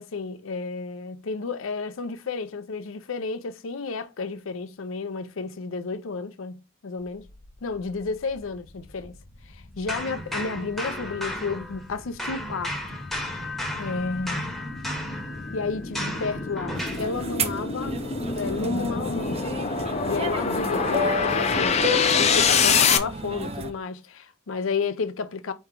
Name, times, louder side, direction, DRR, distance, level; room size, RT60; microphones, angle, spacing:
voice 1, 0.0-7.3 7.6-9.2 9.4-13.0 13.8-14.4 15.5-18.0 18.4-19.5 20.0-25.5, left 4 dB, 85° left, 0.5 m, -32 dB
sound 1, 8.3-8.4 8.9-23.0, left 5 dB, 35° left, 0.4 m, -26 dB
sound 2, 9.9-11.9 12.2-17.1, left 1 dB, ahead, 0.8 m, -34 dB
sound 3, 16.8-23.7, equal, 30° right, 0.5 m, -31 dB
4.5 x 3.1 x 3.7 m
head